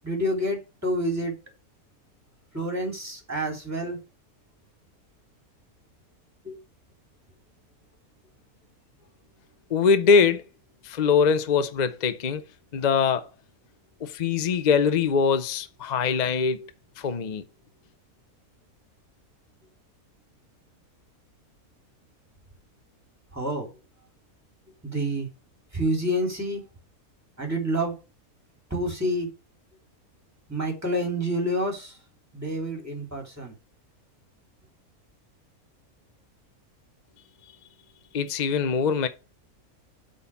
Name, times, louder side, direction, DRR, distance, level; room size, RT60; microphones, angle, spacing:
voice 1, 0.0-1.3 2.5-4.0 6.4-6.6 23.3-23.7 24.8-25.3 25.7-26.6 27.4-27.9 28.7-29.3 30.5-32.0 32.3-33.5, equal, 10° right, 3.0 m, -28 dB
voice 2, 9.7-10.4 10.8-12.4 12.7-13.3 14.0-16.7 17.0-17.4 38.1-39.1, left 5 dB, 50° left, 0.5 m, -22 dB
8.3 x 3.9 x 6.9 m
omnidirectional pair, 1.5 m